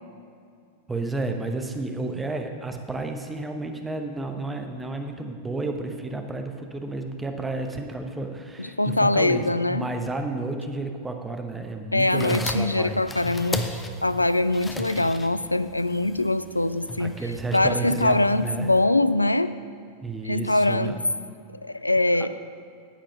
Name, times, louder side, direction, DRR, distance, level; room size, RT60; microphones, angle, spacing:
voice 1, 0.9-13.1 17.0-18.7 20.0-21.0, right 2 dB, 10° right, 5 dB, 1.0 m, -31 dB
voice 2, 8.6-9.8 11.9-13.6 14.0-17.2 17.5-19.5 20.2-21.0 21.6-22.3, left 2 dB, 85° left, 13 dB, 0.4 m, -23 dB
sound 1, 12.0-18.8, left 2 dB, 15° left, 0.8 m, -36 dB
9.9 x 8.9 x 5.6 m, 2.4 s
figure-of-eight pair, 90°, 0 cm